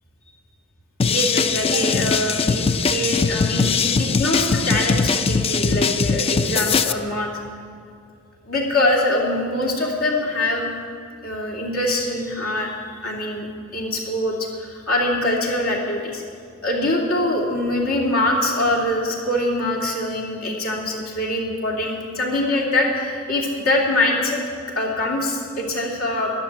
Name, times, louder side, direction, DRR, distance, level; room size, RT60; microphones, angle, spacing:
sound 1, 1.0-6.9, left 5 dB, 25° left, 0.4 m, -21 dB
voice 1, 1.1-7.3 8.4-10.7 11.2-12.7 13.0-13.5 13.7-16.2 16.6-24.4 24.8-26.3, left 1 dB, 75° left, -2 dB, 2.9 m, -23 dB
12.0 x 11.0 x 7.4 m, 2.3 s
head